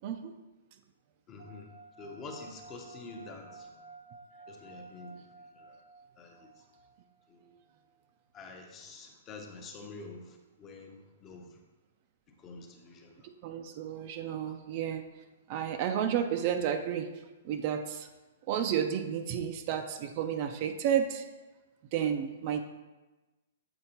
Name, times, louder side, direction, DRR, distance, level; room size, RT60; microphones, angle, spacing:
voice 1, 1.3-1.7 2.0-3.8 4.5-5.2 5.5-5.8 6.2-6.6 7.3-7.6 8.3-11.6 12.4-13.3, left 3 dB, 20° left, 3 dB, 0.6 m, -47 dB
sound 1, 1.4-8.0, right 4 dB, 55° right, 0.9 m, -54 dB
voice 2, 13.4-15.0 15.5-17.1 17.4-18.1 18.5-21.3 21.9-22.6, right 9 dB, 35° right, 6 dB, 0.4 m, -31 dB
7.7 x 4.4 x 2.9 m, 1.1 s
hypercardioid pair, 165°, 0 cm